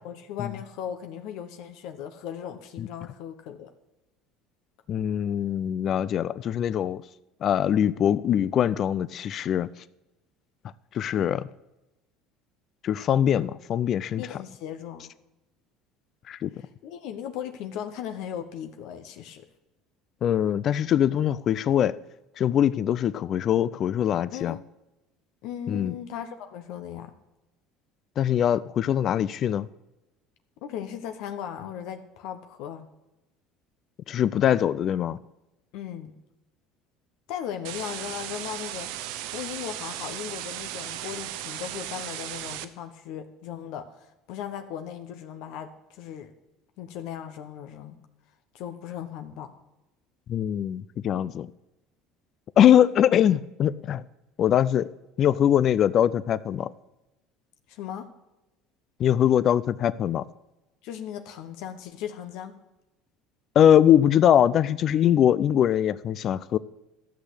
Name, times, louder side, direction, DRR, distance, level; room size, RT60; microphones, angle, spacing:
voice 1, 0.0-3.7 14.2-15.1 16.6-19.5 24.3-24.6 25.4-27.1 30.6-32.9 35.7-36.1 37.3-46.3 46.8-48.0 48.5-49.5 57.7-58.1 60.8-62.5, left 9 dB, 70° left, 7 dB, 1.1 m, -37 dB
voice 2, 4.9-7.0 7.4-9.7 10.9-11.5 12.8-14.3 16.3-16.5 20.2-22.0 22.4-24.6 25.7-26.0 28.2-29.7 34.1-35.2 50.3-51.5 52.6-54.0 54.4-54.9 55.2-56.7 59.0-60.2 63.6-66.6, left 10 dB, 50° left, 17 dB, 0.4 m, -22 dB
sound 1, 37.6-42.6, right 12 dB, 75° right, 0.8 m, -36 dB
13.0 x 6.4 x 8.2 m, 0.97 s
supercardioid pair, 100°, 0 cm